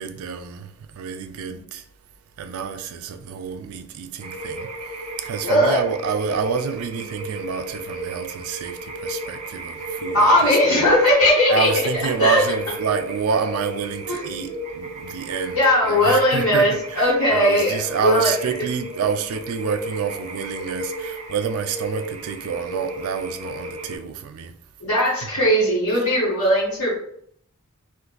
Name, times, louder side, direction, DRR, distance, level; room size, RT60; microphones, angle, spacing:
voice 1, 0.0-1.8 2.4-4.7 5.2-10.9 11.5-24.5, right 6 dB, 90° right, 0.4 m, -28 dB
sound 1, 4.2-24.0, right 2 dB, 35° right, 0.5 m, -34 dB
voice 2, 5.4-5.8 10.1-11.7 12.2-12.4 14.1-14.5 15.5-18.3 24.8-26.9, left 1 dB, 80° left, 1.2 m, -18 dB
2.5 x 2.5 x 3.8 m
head